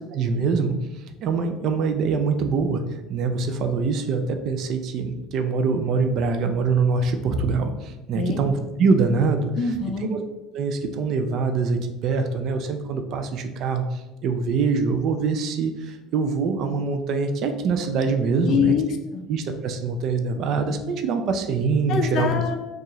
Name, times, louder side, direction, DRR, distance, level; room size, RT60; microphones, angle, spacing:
voice 1, 0.1-0.8 1.2-2.8 3.1-9.5 10.1-10.2 10.5-18.7 19.3-22.6, right 4 dB, 55° right, 6 dB, 0.4 m, -24 dB
voice 2, 9.6-10.1 18.4-19.2 21.9-22.6, left 6 dB, 50° left, 6 dB, 0.5 m, -24 dB
4.5 x 2.4 x 3.1 m, 1.1 s
cardioid pair, 135°, 0 cm